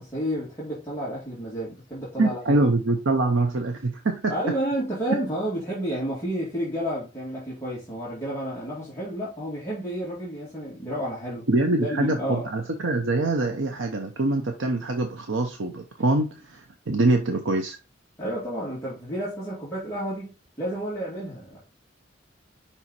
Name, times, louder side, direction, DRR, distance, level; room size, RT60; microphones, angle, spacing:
voice 1, 0.0-2.7 4.3-11.5 11.8-12.5 18.2-21.6, equal, 15° left, 2.4 m, -31 dB
voice 2, 2.2-4.3 11.5-17.8, right 2 dB, 75° right, 0.8 m, -24 dB
5.5 x 4.5 x 4.1 m
head